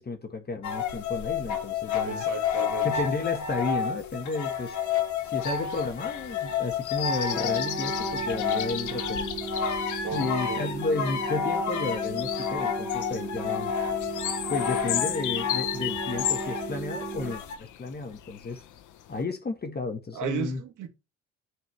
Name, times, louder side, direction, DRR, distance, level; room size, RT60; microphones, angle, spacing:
voice 1, 0.0-2.2 2.8-4.8 5.2-9.3 10.1-13.7 14.5-18.6 19.1-20.6, left 3 dB, 30° left, 1.6 m, -32 dB
sound 1, 0.6-17.6, left 7 dB, 70° left, 1.8 m, -30 dB
voice 2, 2.0-2.9 10.0-10.7 20.1-20.9, right 8 dB, 80° right, 1.9 m, -35 dB
sound 2, 5.3-19.2, left 12 dB, 85° left, 1.1 m, -36 dB
sound 3, 7.3-17.3, right 5 dB, 25° right, 3.8 m, -36 dB
9.1 x 4.8 x 3.3 m
cardioid pair, 90°, 30 cm